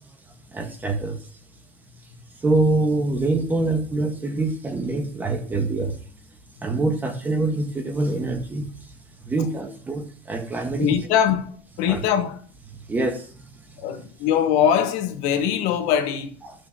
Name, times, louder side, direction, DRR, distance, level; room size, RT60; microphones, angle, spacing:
voice 1, 0.5-1.3 2.4-6.0 6.6-8.7 9.2-10.9 11.9-12.0 12.9-13.4 16.4-16.5, right 2 dB, 15° right, 1.3 m, -25 dB
voice 2, 10.8-12.4 13.8-16.3, left 9 dB, 80° left, 1.4 m, -22 dB
14.0 x 6.6 x 2.9 m
cardioid pair, 175°, 12 cm